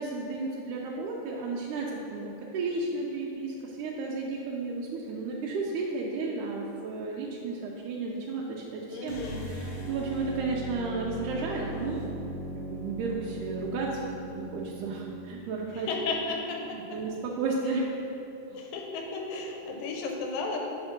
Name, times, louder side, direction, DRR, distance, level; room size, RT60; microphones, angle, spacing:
voice 1, 0.0-12.1 12.5-13.9 14.3-15.9 16.7-17.9 18.5-18.6, right 3 dB, 75° right, -4 dB, 2.0 m, -33 dB
voice 2, 8.9-9.4 15.7-17.0 18.5-20.6, left 3 dB, 85° left, 1 dB, 2.6 m, -34 dB
sound 1, 9.0-15.3, equal, 60° left, 3.0 m, -38 dB
7.8 x 4.3 x 5.8 m, 2.8 s
omnidirectional pair, 3.9 m